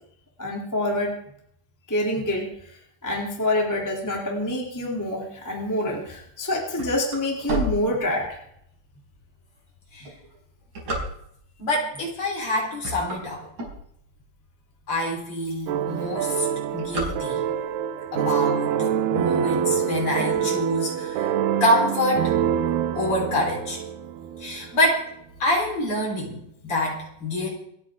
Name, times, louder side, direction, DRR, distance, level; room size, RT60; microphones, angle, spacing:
voice 1, 0.4-1.1 1.9-2.8 3.0-8.4 16.2-16.3 20.2-20.5, left 1 dB, 5° left, -2 dB, 2.1 m, -27 dB
sound 1, 6.7-8.6 9.1-9.2 9.9-11.6 12.2-12.4 12.7-14.3 14.8-14.9 15.1-15.2 15.5-15.8 16.1-17.7, right 1 dB, 45° right, 5.5 m, -32 dB
voice 2, 11.6-13.4 14.9-16.5 16.7-17.4 18.1-21.3 21.6-22.4 22.9-23.8 24.4-25.1 25.4-27.5, left 1 dB, 35° left, -1 dB, 4.6 m, -26 dB
sound 2, 15.7-24.7, right 9 dB, 75° right, 2.8 m, -26 dB
28.5 x 9.5 x 3.7 m, 0.71 s
omnidirectional pair, 4.8 m